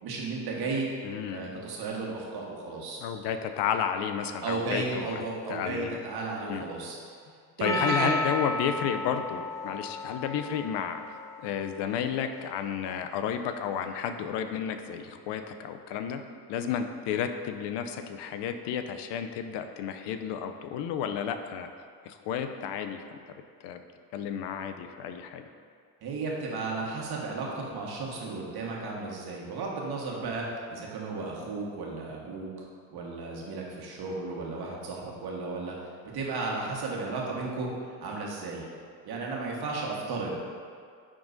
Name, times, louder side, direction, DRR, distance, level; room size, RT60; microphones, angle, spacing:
voice 1, 0.0-0.9 1.3-3.0 4.4-7.0 7.6-8.1 26.0-32.5 32.9-35.8 36.1-37.7 38.0-38.6 39.0-40.4, right 3 dB, 55° right, -2 dB, 1.5 m, -34 dB
voice 2, 1.0-1.5 3.0-6.0 6.5-6.6 7.6-11.0 11.4-16.2 16.5-21.7 22.0-23.3 23.6-23.8 24.1-25.5, left 8 dB, 65° left, 7 dB, 0.6 m, -32 dB
Percussion, 7.6-12.0, left 2 dB, 10° left, 0.3 m, -33 dB
10.0 x 3.7 x 2.7 m, 2.1 s
hypercardioid pair, 70°, 46 cm